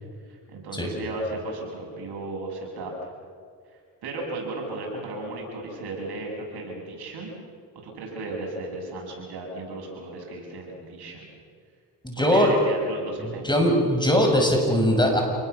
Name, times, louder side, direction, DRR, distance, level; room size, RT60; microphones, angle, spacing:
voice 1, 0.3-3.1 4.0-7.3 7.8-11.3 12.2-13.6, right 2 dB, 75° right, 0 dB, 7.4 m, -35 dB
voice 2, 12.0-12.5 13.4-15.2, equal, 10° left, 2 dB, 6.9 m, -20 dB
28.0 x 20.0 x 7.0 m, 2.1 s
cardioid pair, 70°, 39 cm